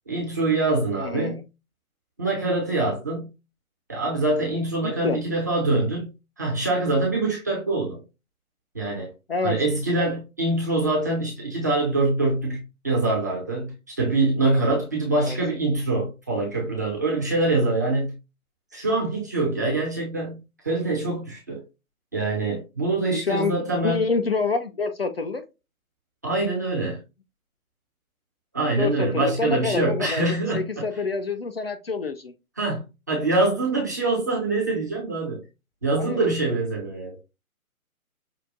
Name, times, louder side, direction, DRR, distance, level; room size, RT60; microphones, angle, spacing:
voice 1, 0.1-1.4 2.2-3.3 3.9-6.1 6.4-8.0 8.7-9.1 9.4-18.1 18.7-20.4 20.6-21.6 22.1-24.0 26.2-27.0 28.5-30.8 32.6-35.4 35.8-37.2, right 2 dB, 15° right, 0.5 m, -24 dB
voice 2, 0.9-1.4 4.8-5.2 9.3-9.6 15.2-15.4 23.2-25.4 28.8-32.3 36.0-36.2, left 4 dB, 45° left, 0.4 m, -27 dB
5.9 x 2.4 x 2.6 m
figure-of-eight pair, 140°, 44 cm